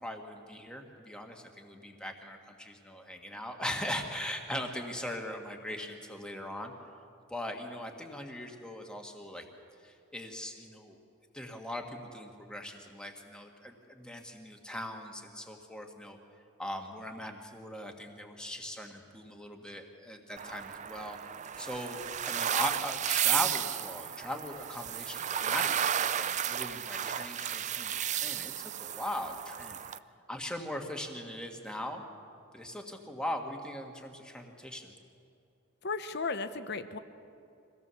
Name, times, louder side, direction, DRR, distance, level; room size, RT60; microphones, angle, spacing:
voice 1, 0.0-6.7 7.3-9.4 9.8-11.0 11.3-16.2 16.6-21.2 21.6-29.8 30.3-32.0 32.5-34.9, left 1 dB, 5° left, 2 dB, 1.6 m, -40 dB
sound 1, 20.4-30.0, right 10 dB, 35° right, 0.4 m, -33 dB
voice 2, 35.8-37.0, left 4 dB, 55° left, 10 dB, 0.9 m, -35 dB
24.0 x 17.0 x 7.0 m, 2.6 s
head